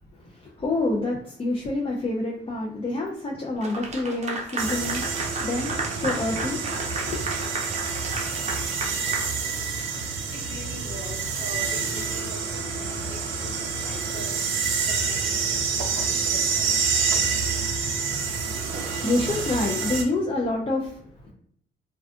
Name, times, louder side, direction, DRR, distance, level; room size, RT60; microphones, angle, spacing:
voice 1, 0.3-5.0 5.4-6.6 6.9-7.3 18.5-18.7 19.0-21.0, left 2 dB, 30° left, -3 dB, 0.4 m, -27 dB
Clapping / Applause, 3.6-10.0, right 3 dB, 35° right, 0.5 m, -33 dB
sound 1, 4.6-20.0, right 5 dB, 85° right, 0.5 m, -27 dB
voice 2, 10.3-14.4 14.9-16.7 16.9-17.3 18.9-19.0, left 1 dB, 55° left, -3 dB, 1.1 m, -42 dB
2.4 x 2.3 x 2.3 m, 0.66 s
cardioid pair, 90°, 20 cm